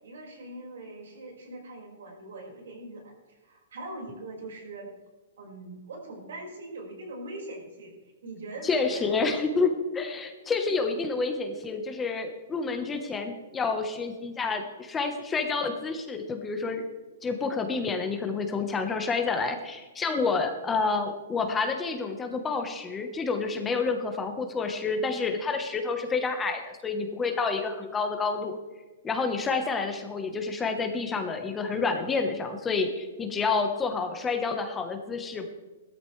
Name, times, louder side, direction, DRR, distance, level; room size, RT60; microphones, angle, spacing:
voice 1, 0.0-4.9 5.4-7.9 8.2-9.5, right 2 dB, 80° right, 0 dB, 5.1 m, -42 dB
voice 2, 8.6-16.8 17.2-28.6 29.0-35.5, left 4 dB, 15° left, 5 dB, 1.1 m, -29 dB
17.0 x 13.0 x 3.3 m, 1.2 s
hypercardioid pair, 155°, 0 cm